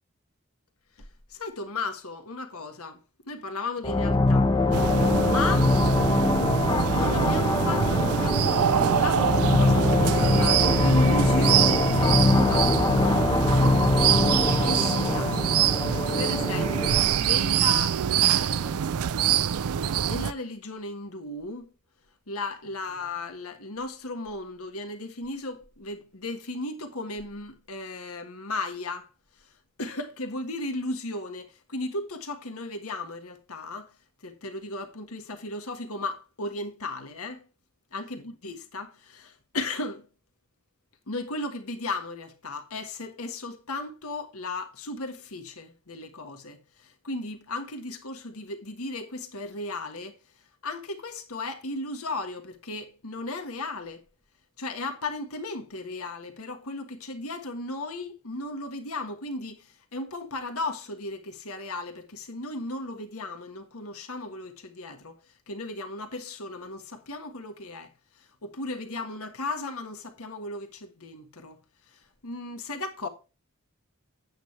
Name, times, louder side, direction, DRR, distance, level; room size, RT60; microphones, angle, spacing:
voice 1, 1.3-3.0 3.3-4.5 5.1-5.7 6.9-12.7 13.3-13.6 14.6-15.3 16.2-18.8 20.0-21.7 22.3-29.1 29.8-33.9 34.2-37.4 37.9-40.1 41.1-50.2 50.6-54.0 54.6-65.2 65.5-67.9 68.4-71.6 72.2-73.1, left 2 dB, 80° left, 1.5 m, -35 dB
sound 1, 3.8-17.2, left 2 dB, 20° left, 0.6 m, -23 dB
sound 2, 4.7-20.3, right 8 dB, 80° right, 0.4 m, -25 dB
8.7 x 8.7 x 3.2 m
head